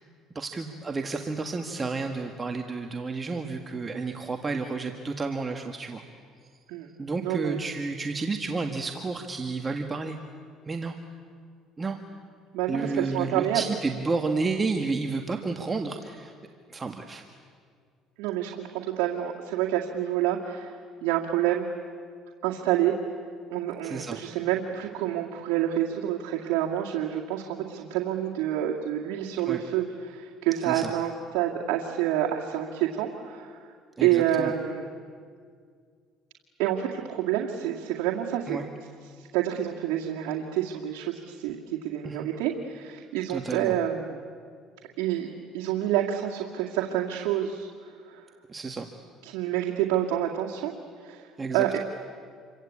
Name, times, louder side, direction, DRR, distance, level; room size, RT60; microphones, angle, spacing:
voice 1, 0.3-6.0 7.0-10.2 10.7-10.9 11.8-12.0 12.7-16.3 16.7-17.2 23.8-24.2 29.5-29.6 30.6-30.9 34.0-34.5 38.5-38.6 42.0-42.3 43.3-43.7 48.5-48.9 51.4-51.8, right 3 dB, 25° right, 4 dB, 1.7 m, -31 dB
voice 2, 7.2-7.6 12.5-13.6 18.2-20.7 21.0-21.7 22.4-22.9 23.5-33.6 34.0-34.9 36.6-38.6 39.3-44.2 45.0-48.2 49.2-50.7 51.0-51.2 51.5-51.8, right 11 dB, 85° right, -2 dB, 2.2 m, -28 dB
28.0 x 24.5 x 8.7 m, 2.1 s
cardioid pair, 105°, 0 cm